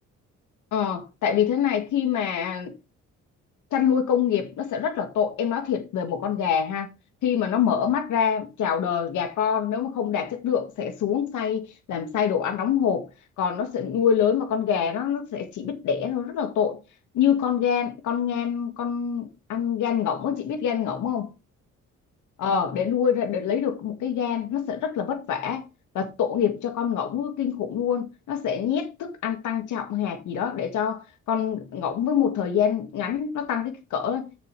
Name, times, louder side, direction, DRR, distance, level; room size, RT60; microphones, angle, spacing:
voice 1, 0.7-2.7 3.7-6.9 7.2-13.1 13.4-16.8 17.1-21.3 22.4-25.7 25.9-34.4, left 8 dB, 80° left, 2.1 m, -25 dB
9.8 x 7.1 x 3.5 m
cardioid pair, 90°, 30 cm